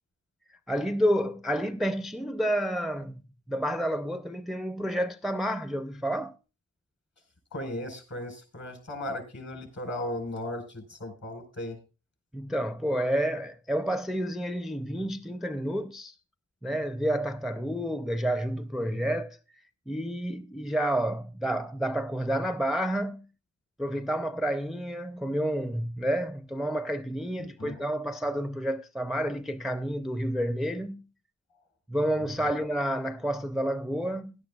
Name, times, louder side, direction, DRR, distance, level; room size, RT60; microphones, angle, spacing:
voice 1, 0.7-3.2 3.5-6.4 12.3-16.2 16.6-19.4 19.9-23.3 23.8-31.0 31.9-34.3, equal, ahead, 0.5 m, -29 dB
voice 2, 7.5-11.8 27.6-27.9 31.5-31.6 32.4-32.5, left 1 dB, 55° left, 4.5 m, -36 dB
17.0 x 11.0 x 2.4 m
wide cardioid pair, 55°, 33 cm